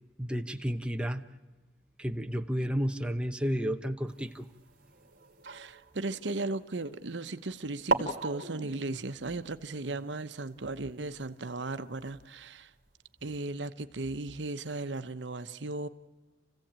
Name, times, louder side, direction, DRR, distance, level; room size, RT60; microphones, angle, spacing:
voice 1, 0.2-1.2 2.0-4.5, equal, 5° right, 6 dB, 1.0 m, -31 dB
sound 1, 4.1-7.0 7.6-7.7 7.9-12.5, right 3 dB, 55° right, 2.3 m, -39 dB
voice 2, 5.4-12.7 13.2-15.9, right 2 dB, 75° right, 10 dB, 1.0 m, -36 dB
29.0 x 16.0 x 8.9 m, 1.2 s
head